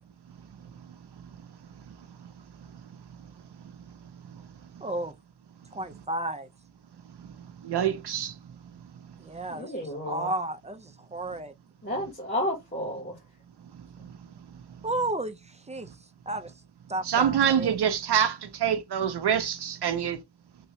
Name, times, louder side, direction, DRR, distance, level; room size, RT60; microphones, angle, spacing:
voice 1, 4.8-5.1 5.7-6.5 9.2-11.5 14.8-15.9 16.3-16.5 16.9-17.8, right 2 dB, 20° right, 0.5 m, -33 dB
voice 2, 7.6-8.3 17.0-20.2, right 9 dB, 90° right, 0.6 m, -25 dB
voice 3, 9.5-10.3 11.8-13.2, left 1 dB, 30° left, 1.6 m, -31 dB
3.4 x 2.8 x 3.1 m
wide cardioid pair, 70°, 38 cm